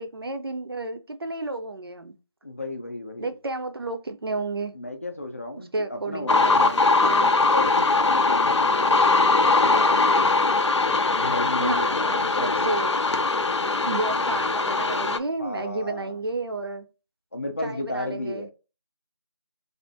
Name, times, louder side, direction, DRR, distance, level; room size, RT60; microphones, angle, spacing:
voice 1, 0.0-2.2 3.2-4.7 5.7-6.8 7.0-7.3 11.6-12.9 13.8-16.9 17.6-18.5, right 2 dB, 55° right, 0.5 m, -31 dB
voice 2, 2.4-3.3 4.7-10.2 11.2-12.9 15.4-16.2 17.3-18.5, left 2 dB, 30° left, 0.5 m, -34 dB
sound 1, 6.3-15.2, left 3 dB, 85° left, 0.5 m, -21 dB
3.4 x 2.4 x 2.6 m
figure-of-eight pair, 170°, 15 cm